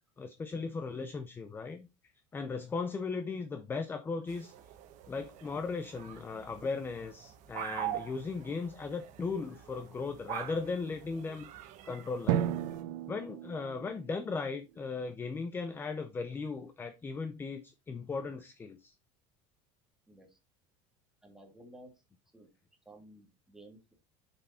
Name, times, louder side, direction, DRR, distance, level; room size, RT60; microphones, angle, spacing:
voice 1, 0.2-1.9 2.3-4.5 5.1-12.5 13.1-18.9, left 4 dB, 15° left, 0.5 m, -37 dB
sound 1, 4.3-12.8, right 12 dB, 50° right, 1.4 m, -44 dB
Drum, 12.3-14.8, right 11 dB, 80° right, 0.9 m, -34 dB
voice 2, 20.1-20.4 21.2-21.9 22.3-22.5 22.9-23.9, right 1 dB, 5° right, 2.0 m, -54 dB
6.8 x 6.8 x 4.1 m
cardioid pair, 160°, 16 cm